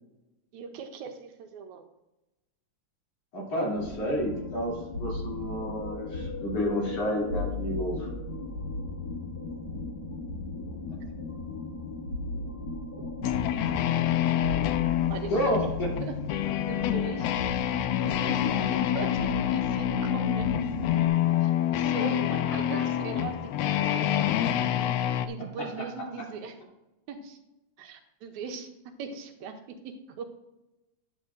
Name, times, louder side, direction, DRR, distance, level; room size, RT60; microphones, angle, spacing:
voice 1, 0.5-1.8 15.1-15.3 16.0-16.2 16.7-17.4 17.8-18.6 18.9-20.5 21.4-22.3 22.6-24.3 24.8-24.9 25.3-26.6 27.1-27.4 27.8-30.3, right 5 dB, 85° right, 6 dB, 2.2 m, -40 dB
voice 2, 3.3-4.7 5.0-8.1 15.3-15.9 22.0-22.1 22.5-22.8, equal, 60° left, -4 dB, 4.1 m, -30 dB
sound 1, 3.7-21.1, left 3 dB, 40° left, 1.5 m, -36 dB
sound 2, 13.2-25.3, left 11 dB, 80° left, 1.5 m, -27 dB
11.5 x 8.6 x 2.6 m, 0.99 s
omnidirectional pair, 3.3 m